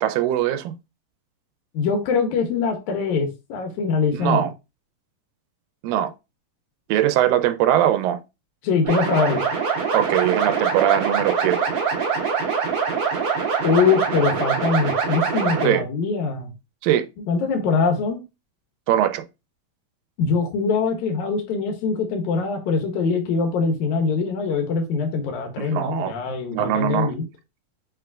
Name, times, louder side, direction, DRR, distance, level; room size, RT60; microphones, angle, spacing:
voice 1, 0.0-0.7 4.1-4.5 5.8-6.1 6.9-8.2 9.9-11.7 15.6-15.8 16.8-17.1 18.9-19.2 25.6-26.1 26.5-27.1, right 11 dB, 90° right, 2.3 m, -21 dB
voice 2, 1.7-4.4 8.6-9.4 13.6-16.5 17.3-18.2 20.2-27.2, left 5 dB, 75° left, 2.0 m, -23 dB
sound 1, 8.8-15.7, right 5 dB, 60° right, 2.4 m, -23 dB
6.9 x 3.1 x 2.4 m
omnidirectional pair, 3.9 m